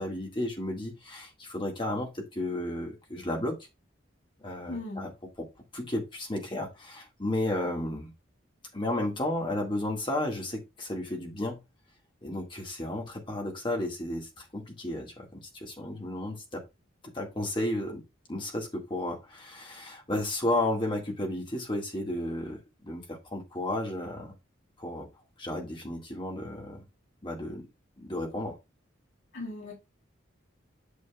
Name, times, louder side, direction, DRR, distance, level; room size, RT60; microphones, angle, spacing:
voice 1, 0.0-3.6 4.4-5.1 5.4-5.5 5.7-8.1 8.7-11.6 12.2-16.6 17.0-18.0 18.3-24.3 24.8-25.1 25.4-26.8 27.2-27.7 28.0-28.5, left 1 dB, 25° left, 1.9 m, -33 dB
voice 2, 4.7-5.0 29.3-29.7, left 2 dB, 70° left, 3.8 m, -37 dB
8.6 x 6.2 x 2.4 m
head